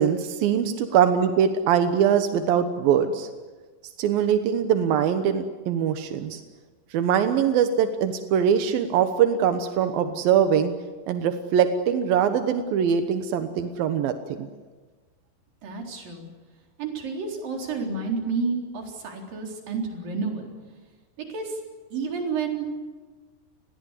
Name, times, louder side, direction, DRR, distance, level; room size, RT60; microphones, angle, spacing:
voice 1, 0.0-3.3 4.0-6.4 6.9-10.7 11.1-14.5, right 8 dB, 75° right, 8 dB, 2.1 m, -22 dB
voice 2, 15.6-16.3 16.8-20.5 21.3-21.6 21.9-22.7, right 4 dB, 45° right, 1 dB, 5.3 m, -30 dB
29.5 x 21.0 x 8.3 m, 1.4 s
omnidirectional pair, 5.9 m